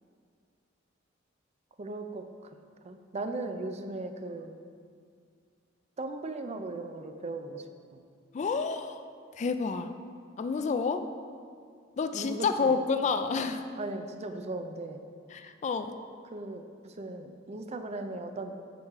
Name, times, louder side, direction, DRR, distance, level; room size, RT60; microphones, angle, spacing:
voice 1, 1.8-2.2 2.8-4.6 6.0-7.6 7.9-8.0 12.1-12.7 13.8-15.0 16.3-18.6, right 2 dB, 35° right, 7 dB, 0.5 m, -37 dB
voice 2, 8.3-9.0 9.3-9.9 10.4-11.1 12.0-13.7 15.3-16.0, left 4 dB, 35° left, 9 dB, 0.3 m, -29 dB
13.0 x 4.7 x 3.6 m, 2.2 s
head